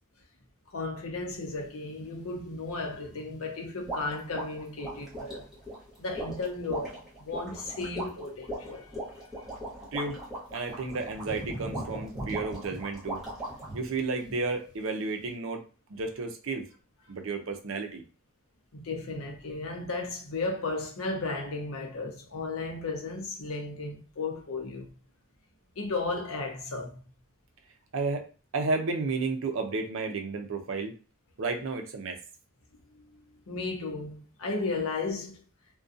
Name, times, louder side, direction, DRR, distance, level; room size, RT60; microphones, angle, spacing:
voice 1, 0.7-5.5 6.0-9.6 18.7-24.9 25.8-27.0 32.9-35.4, left 3 dB, 70° left, 0.6 m, -35 dB
sound 1, 1.9-2.1 4.8-5.3 5.8-5.9 8.3-8.4 9.5-9.6 10.0-10.1 10.5-12.9 13.1-14.8 15.2-15.3, right 1 dB, 35° left, 1.1 m, -42 dB
sound 2, 3.9-13.8, right 1 dB, ahead, 0.9 m, -39 dB
voice 2, 9.9-10.2 10.5-13.2 13.7-15.6 15.9-16.7 17.1-18.0 27.9-28.2 28.5-30.9 31.4-32.2, right 3 dB, 65° right, 0.5 m, -32 dB
2.5 x 2.2 x 2.5 m
head